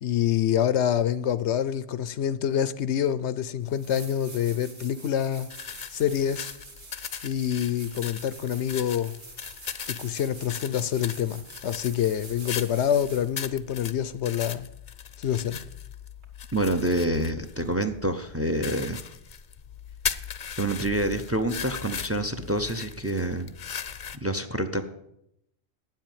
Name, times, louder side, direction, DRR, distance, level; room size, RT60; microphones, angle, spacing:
voice 1, 0.0-5.5 5.9-6.5 7.2-9.2 9.9-14.7 15.2-15.6, left 9 dB, 85° left, 1.0 m, -26 dB
sound 1, 3.2-3.3 3.7-13.4 16.2-16.3, right 2 dB, 50° right, 1.8 m, -46 dB
sound 2, 5.5-24.2, left 8 dB, 50° left, 0.7 m, -39 dB
voice 2, 16.5-19.0 20.6-23.5 24.2-24.8, right 1 dB, 15° right, 0.6 m, -27 dB
9.4 x 7.6 x 9.1 m
omnidirectional pair, 1.1 m